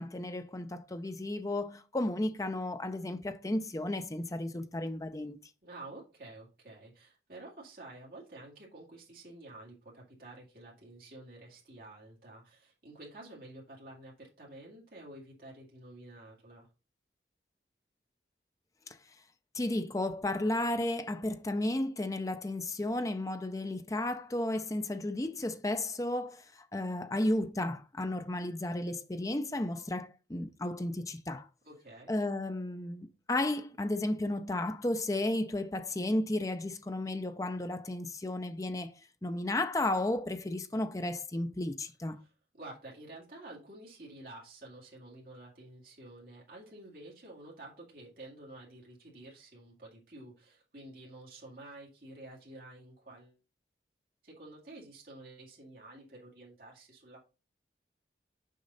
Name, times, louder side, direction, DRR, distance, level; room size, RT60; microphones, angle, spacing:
voice 1, 0.0-5.4 18.9-19.0 19.5-31.5 32.1-38.9 39.2-42.2, left 1 dB, 20° left, 0.5 m, -33 dB
voice 2, 5.6-16.7 31.6-32.1 42.2-53.4 54.2-57.3, right 2 dB, 55° right, 2.3 m, -50 dB
6.5 x 5.3 x 4.0 m
head